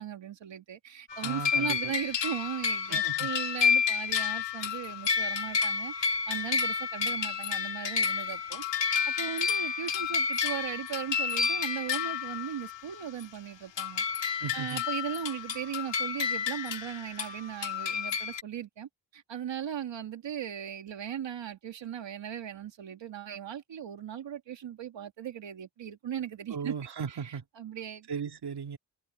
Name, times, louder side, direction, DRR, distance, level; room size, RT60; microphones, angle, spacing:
voice 1, 0.0-8.6 9.1-26.7 27.1-28.1, right 9 dB, 80° right, 2.1 m, -38 dB
sound 1, 1.1-12.8 13.2-13.3 13.8-18.4, left 6 dB, 75° left, 2.4 m, -30 dB
voice 2, 1.2-1.9 2.9-3.3 14.4-14.8 26.5-27.4 28.1-28.8, right 6 dB, 60° right, 2.3 m, -37 dB
cardioid pair, 90°, 44 cm